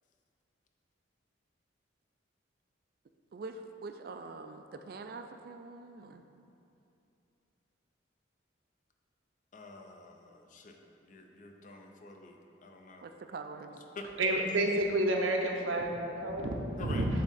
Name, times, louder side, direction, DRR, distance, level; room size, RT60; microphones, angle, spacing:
voice 1, 3.3-6.3 13.0-13.8, right 3 dB, 50° right, 6 dB, 0.3 m, -44 dB
voice 2, 9.5-13.1 13.7-14.1 16.8-17.1, left 3 dB, 40° left, 3 dB, 0.5 m, -48 dB
voice 3, 14.2-17.1, right 1 dB, 85° right, 1 dB, 0.7 m, -30 dB
7.5 x 3.6 x 4.0 m, 2.7 s
head